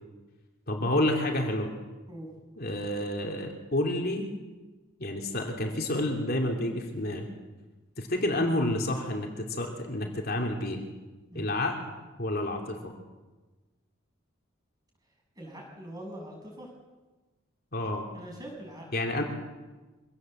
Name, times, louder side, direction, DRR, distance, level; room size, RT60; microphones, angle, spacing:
voice 1, 0.7-1.7 2.6-4.3 5.0-7.3 8.0-10.8 11.3-12.9 17.7-18.1 18.9-19.2, left 1 dB, 45° left, 1 dB, 3.1 m, -29 dB
voice 2, 15.4-16.7 18.1-18.9, right 1 dB, 20° right, 0 dB, 7.3 m, -43 dB
25.0 x 18.0 x 8.0 m, 1.2 s
head